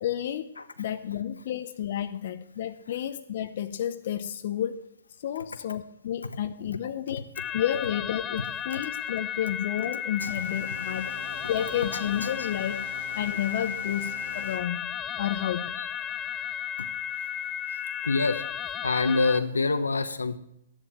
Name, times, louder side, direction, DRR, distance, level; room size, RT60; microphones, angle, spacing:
voice 1, 0.0-0.5 0.8-4.9 5.2-7.2 7.5-11.1 11.5-12.8 13.1-14.8 15.2-15.8, left 10 dB, 55° left, 9 dB, 0.7 m, -31 dB
sound 1, 7.4-19.4, left 9 dB, 20° left, 0.5 m, -34 dB
sound 2, 10.2-14.6, right 3 dB, 70° right, 3.4 m, -44 dB
voice 2, 11.9-12.5 15.8-15.9 16.8-16.9 17.7-18.5 18.8-20.4, left 3 dB, 85° left, 10 dB, 1.0 m, -27 dB
13.0 x 10.5 x 4.5 m, 0.80 s
hypercardioid pair, 125°, 0 cm